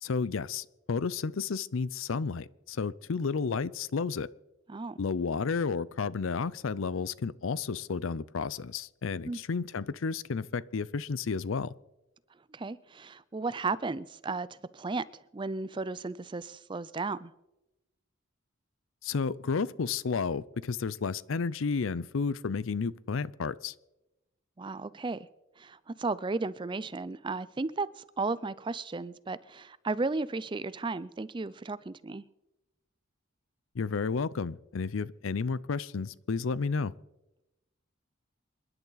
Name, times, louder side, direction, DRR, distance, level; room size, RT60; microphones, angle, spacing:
voice 1, 0.0-4.3 5.0-11.7 19.0-23.7 33.7-36.9, left 5 dB, 75° left, 19 dB, 0.5 m, -32 dB
voice 2, 12.5-14.5 14.7-15.0 15.3-17.3 24.6-25.3 25.6-32.2, right 3 dB, 25° right, 17 dB, 0.4 m, -34 dB
28.0 x 11.0 x 4.0 m, 0.96 s
head